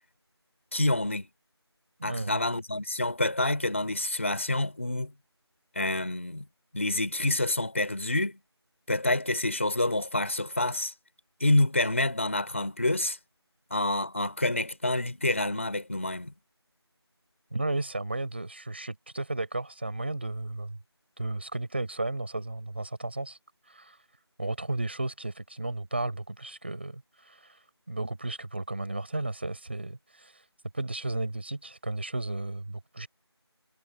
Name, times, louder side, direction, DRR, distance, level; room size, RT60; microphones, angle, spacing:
voice 1, 0.7-1.3 2.0-5.1 5.7-6.5 6.7-8.4 8.9-10.9 11.4-13.2 13.7-16.3, left 2 dB, 30° left, 3.4 m, -27 dB
voice 2, 2.0-2.4 17.5-20.8 21.2-23.4 23.6-24.1 24.4-30.5 30.7-33.1, right 2 dB, 25° right, 4.5 m, -34 dB
figure-of-eight pair, 180°, 14 cm